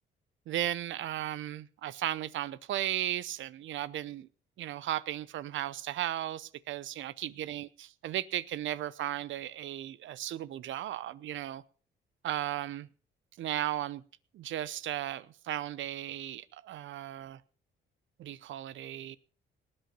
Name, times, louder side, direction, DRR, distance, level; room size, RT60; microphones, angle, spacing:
voice 1, 0.5-4.3 4.6-11.6 12.2-12.9 13.4-14.0 14.3-17.4 18.2-19.2, right 13 dB, 75° right, 0.8 m, -35 dB
19.0 x 8.8 x 5.6 m
cardioid pair, 90°, 20 cm